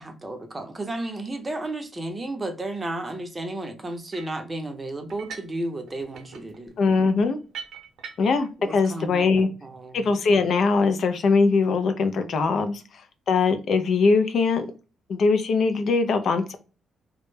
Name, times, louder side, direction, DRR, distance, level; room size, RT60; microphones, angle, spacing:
voice 1, 0.0-6.7 8.6-10.0, right 2 dB, 25° right, 0.6 m, -33 dB
sound 1, 4.1-4.4 5.1-5.6 5.9-8.5, right 6 dB, 70° right, 0.6 m, -42 dB
voice 2, 6.8-7.4 8.2-9.5 9.9-13.0 13.3-14.7 15.1-16.6, left 4 dB, 60° left, 0.4 m, -21 dB
2.1 x 2.0 x 3.1 m
cardioid pair, 90°, 0 cm